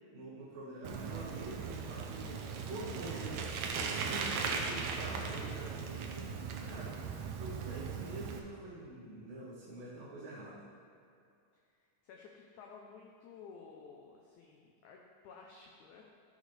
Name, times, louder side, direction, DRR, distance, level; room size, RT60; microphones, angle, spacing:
voice 1, 0.1-2.4 2.7-6.4 6.6-6.9 7.3-10.7, right 1 dB, 60° right, -9 dB, 2.1 m, -46 dB
Bicycle, 0.8-8.4, right 5 dB, 80° right, 1.6 m, -38 dB
voice 2, 12.0-16.0, left 5 dB, 80° left, 0 dB, 1.8 m, -54 dB
13.0 x 6.5 x 3.3 m, 2.4 s
omnidirectional pair, 4.1 m